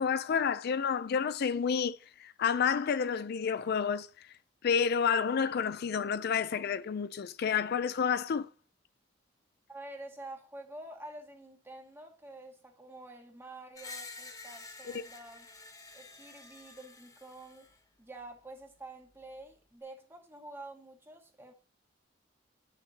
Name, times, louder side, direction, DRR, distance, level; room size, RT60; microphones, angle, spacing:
voice 1, 0.0-4.1 4.6-8.5, left 6 dB, 55° left, 0.4 m, -30 dB
voice 2, 9.7-15.5 15.9-21.5, right 2 dB, 15° right, 1.7 m, -48 dB
Screech, 13.7-17.8, left 3 dB, 20° left, 1.1 m, -49 dB
9.3 x 6.7 x 2.8 m
head